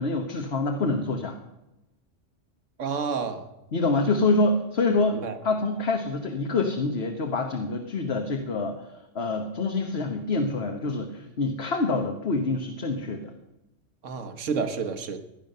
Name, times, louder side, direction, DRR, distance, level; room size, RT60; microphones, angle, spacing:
voice 1, 0.0-1.4 3.7-8.8 9.1-13.3, left 3 dB, 60° left, 3 dB, 1.4 m, -26 dB
voice 2, 2.8-3.5 5.1-5.4 14.0-15.2, right 5 dB, 85° right, 8 dB, 1.5 m, -30 dB
16.5 x 10.5 x 6.7 m, 0.95 s
omnidirectional pair, 1.3 m